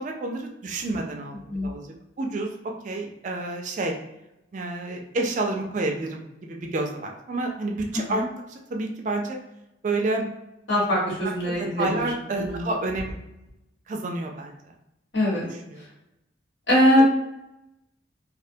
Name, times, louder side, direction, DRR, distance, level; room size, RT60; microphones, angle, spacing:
voice 1, 0.0-2.5 2.8-3.9 4.5-8.2 8.5-9.4 9.8-10.3 11.5-13.2 13.9-14.7 15.3-15.8, right 2 dB, 40° right, 2 dB, 0.3 m, -29 dB
voice 2, 7.9-8.2 10.7-12.1 12.3-12.6 15.1-15.4 16.7-17.1, equal, 75° left, -7 dB, 1.2 m, -22 dB
2.4 x 2.1 x 2.6 m, 0.89 s
head